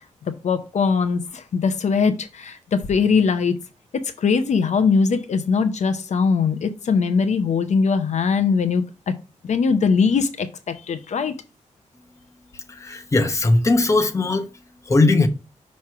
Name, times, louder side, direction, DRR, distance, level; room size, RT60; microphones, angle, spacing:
voice 1, 0.4-3.6 4.2-9.1 9.4-11.3, left 5 dB, 65° left, 0.6 m, -21 dB
voice 2, 12.5-14.5 14.8-15.3, left 2 dB, 25° left, 0.9 m, -19 dB
6.0 x 3.1 x 5.6 m
wide cardioid pair, 155°, 13 cm